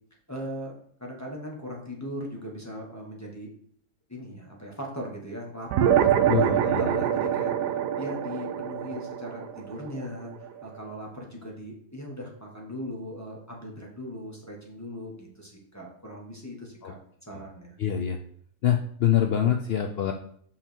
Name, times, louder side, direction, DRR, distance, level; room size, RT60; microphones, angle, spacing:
voice 1, 0.3-3.5 4.1-7.5 7.9-17.0 17.3-17.7, equal, 10° left, -3 dB, 1.4 m, -39 dB
sound 1, 5.7-10.5, right 10 dB, 85° right, 1.2 m, -25 dB
voice 2, 6.3-7.0 16.8-16.9 17.3-17.4 17.8-18.2 18.6-20.1, left 10 dB, 90° left, 4 dB, 0.5 m, -25 dB
5.9 x 5.6 x 4.5 m, 0.62 s
omnidirectional pair, 1.7 m